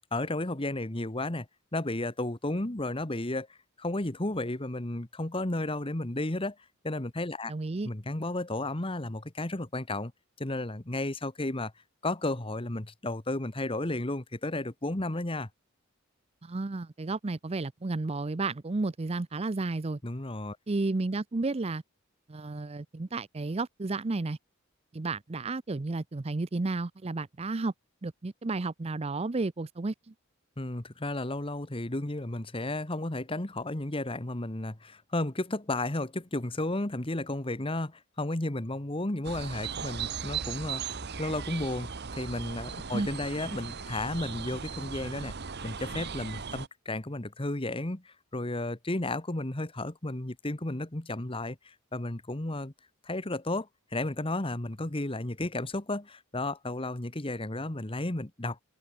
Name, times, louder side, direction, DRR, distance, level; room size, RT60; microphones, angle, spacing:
voice 1, 0.1-1.5 1.7-6.5 6.8-7.5 7.8-10.1 10.4-11.7 12.0-15.5 20.0-20.6 30.6-40.8 41.2-45.3 45.6-52.7 53.0-58.6, left 2 dB, 25° left, 1.4 m, -33 dB
voice 2, 7.5-7.9 16.4-20.0 20.7-21.8 22.3-24.4 24.9-27.7 28.0-30.1 42.9-43.1, right 3 dB, 30° right, 0.5 m, -32 dB
sound 1, 39.2-46.7, right 6 dB, 50° right, 1.1 m, -38 dB
head